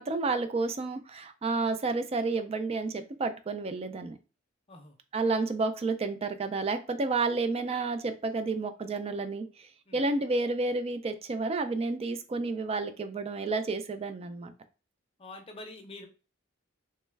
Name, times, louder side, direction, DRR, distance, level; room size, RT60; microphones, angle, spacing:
voice 1, 0.0-4.2 5.1-9.7 9.9-14.5, right 3 dB, 30° right, 9 dB, 0.4 m, -30 dB
voice 2, 15.2-16.1, left 2 dB, 30° left, 5 dB, 0.6 m, -45 dB
3.1 x 2.2 x 3.3 m, 0.33 s
head